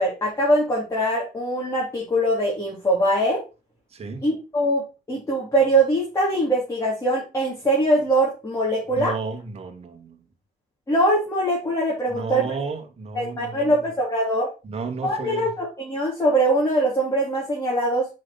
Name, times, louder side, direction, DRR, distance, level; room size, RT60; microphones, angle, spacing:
voice 1, 0.0-3.4 4.2-4.8 5.1-9.1 10.9-12.5 13.2-14.5 15.0-18.1, right 1 dB, 20° left, 3.6 m, -22 dB
voice 2, 3.9-4.3 8.9-10.2 12.1-13.8 14.6-15.5, right 4 dB, 35° right, 2.1 m, -32 dB
7.5 x 5.8 x 4.3 m
cardioid pair, 110°, 17 cm